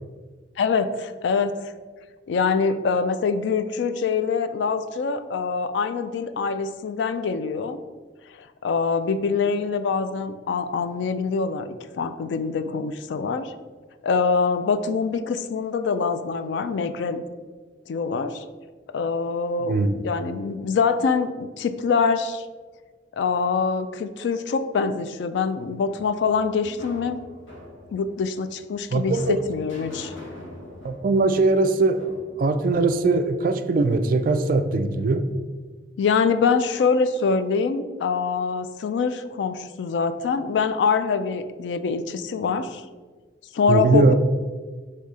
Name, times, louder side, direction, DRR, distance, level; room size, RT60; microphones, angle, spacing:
voice 1, 0.6-1.6 2.3-7.8 8.6-13.5 14.0-17.2 17.9-18.4 18.9-19.8 20.0-22.5 23.2-27.2 27.9-30.1 36.0-42.8 43.5-44.1, left 5 dB, 65° left, 11 dB, 0.3 m, -24 dB
voice 2, 19.6-20.0 28.9-29.4 30.8-32.0 32.4-35.2 43.7-44.1, right 3 dB, 45° right, 8 dB, 0.3 m, -21 dB
sound 1, 26.0-34.1, left 1 dB, 80° left, 1.3 m, -44 dB
4.0 x 2.7 x 4.7 m, 1.4 s
head